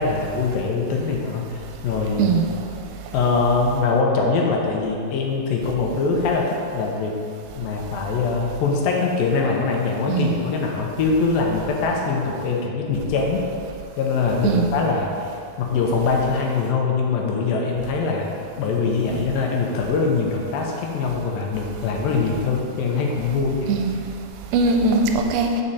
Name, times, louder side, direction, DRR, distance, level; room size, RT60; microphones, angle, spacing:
voice 1, 0.0-2.3 3.1-7.2 7.5-13.4 14.0-15.1 15.6-18.3 18.6-23.7, left 4 dB, 80° left, 0 dB, 2.3 m, -23 dB
voice 2, 10.1-10.4 14.4-14.7 23.7-23.9 24.5-25.6, right 4 dB, 80° right, 4 dB, 2.3 m, -20 dB
8.8 x 4.9 x 4.1 m, 2.5 s
omnidirectional pair, 4.6 m